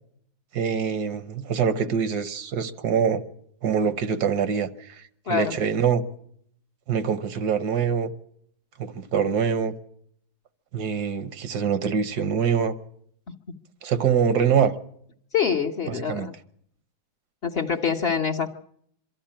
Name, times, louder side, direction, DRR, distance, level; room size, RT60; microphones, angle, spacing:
voice 1, 0.5-3.2 3.6-6.0 6.9-8.1 8.8-9.7 10.7-12.7 13.8-14.7 15.9-16.3, right 7 dB, 75° right, 12 dB, 1.5 m, -24 dB
voice 2, 5.3-5.6 13.3-13.4 15.3-16.3 17.4-18.5, left 7 dB, 45° left, 4 dB, 1.0 m, -25 dB
23.5 x 13.0 x 8.7 m, 0.70 s
omnidirectional pair, 1.7 m